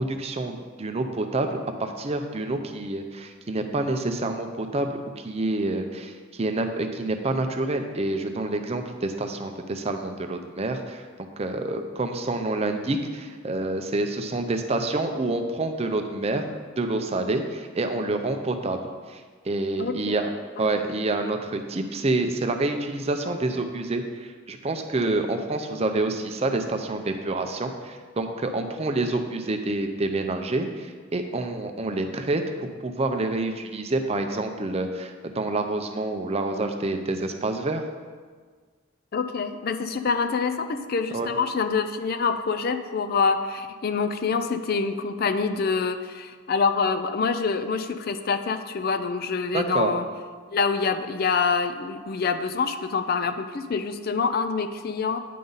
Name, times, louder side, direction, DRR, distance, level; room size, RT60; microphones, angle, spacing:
voice 1, 0.0-11.1 11.4-16.5 16.8-18.8 19.1-20.3 20.6-37.8 41.1-41.3 49.5-49.9, right 2 dB, 30° right, 6 dB, 0.5 m, -28 dB
voice 2, 39.1-50.0 50.5-55.2, left 5 dB, 50° left, 10 dB, 0.4 m, -26 dB
9.3 x 5.4 x 4.0 m, 1.5 s
head